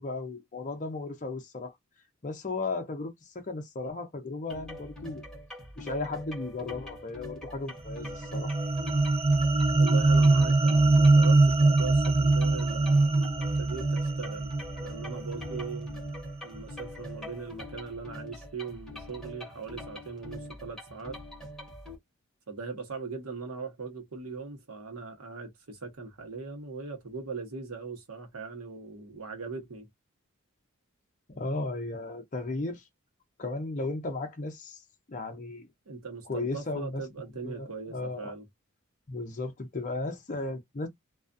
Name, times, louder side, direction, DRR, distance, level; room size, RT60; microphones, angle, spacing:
voice 1, 0.0-1.7 2.2-5.2 5.8-8.5 31.3-32.8 33.4-34.8 35.1-35.7 36.3-37.0 37.4-38.3 39.1-40.9, left 2 dB, 35° left, 0.6 m, -35 dB
sound 1, 4.5-22.0, left 1 dB, ahead, 1.0 m, -44 dB
sound 2, 7.9-16.3, right 2 dB, 25° right, 0.4 m, -23 dB
voice 2, 9.7-13.3 13.5-14.5 14.8-15.9 16.4-21.2 22.5-29.9 35.9-38.4, right 4 dB, 80° right, 1.0 m, -40 dB
2.3 x 2.3 x 2.5 m
head